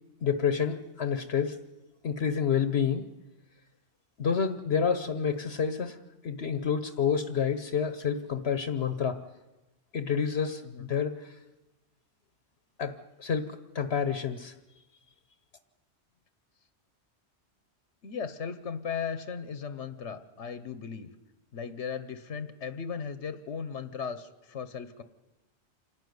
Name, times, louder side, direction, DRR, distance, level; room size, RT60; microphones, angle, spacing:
voice 1, 0.2-1.6 2.0-3.0 4.2-6.0 6.2-9.2 9.9-11.4 12.8-14.5, left 7 dB, 65° left, 9 dB, 1.2 m, -29 dB
voice 2, 18.0-21.1 21.5-25.0, left 6 dB, 85° left, 11 dB, 1.3 m, -37 dB
27.0 x 12.0 x 9.5 m, 1.1 s
omnidirectional pair, 1.2 m